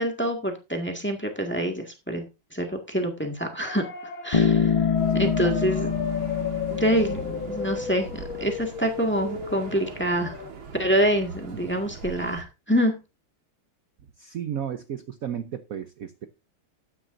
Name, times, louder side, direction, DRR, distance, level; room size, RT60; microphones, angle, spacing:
voice 1, 0.0-2.2 2.5-3.8 4.2-4.7 5.1-5.9 6.7-10.4 10.8-13.0, equal, 5° left, 3 dB, 1.7 m, -26 dB
sound 1, 3.6-10.5, left 6 dB, 80° left, 1.9 m, -34 dB
Bass guitar, 4.3-8.1, left 5 dB, 30° left, 0.7 m, -25 dB
sound 2, 5.0-12.4, right 4 dB, 85° right, 2.6 m, -42 dB
voice 2, 5.1-5.6 14.2-16.3, right 9 dB, 55° right, 9 dB, 1.0 m, -33 dB
13.5 x 10.0 x 2.6 m, 0.27 s
omnidirectional pair, 2.2 m